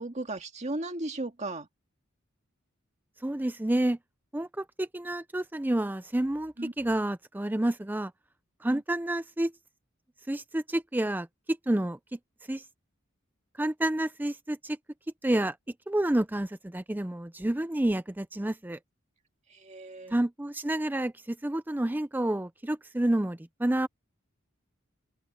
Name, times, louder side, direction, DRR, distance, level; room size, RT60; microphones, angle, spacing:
voice 1, 0.0-1.7 6.6-6.7 8.7-8.8 19.5-20.2, right 2 dB, 35° right, 2.0 m, -36 dB
voice 2, 3.2-4.0 4.3-8.1 8.6-9.5 10.3-12.2 12.5-12.6 13.6-14.8 15.2-15.6 15.9-18.8 20.1-23.9, right 1 dB, 10° right, 0.4 m, -29 dB
open air
head